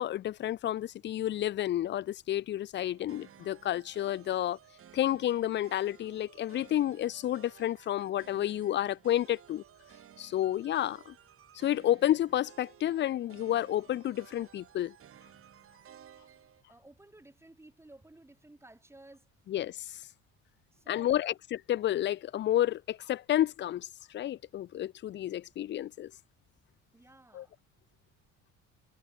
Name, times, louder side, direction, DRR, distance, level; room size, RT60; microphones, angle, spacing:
voice 1, 0.0-4.6 4.9-9.6 10.2-11.1 11.5-14.9 19.5-20.0 20.9-21.3 21.7-26.1 27.3-27.4, left 12 dB, 40° left, 0.4 m, -30 dB
sound 1, 2.8-16.6, right 9 dB, 45° right, 4.0 m, -56 dB
voice 2, 16.7-19.3 20.7-21.3 26.9-27.5, right 2 dB, 10° right, 4.3 m, -55 dB
cardioid pair, 140°, 30 cm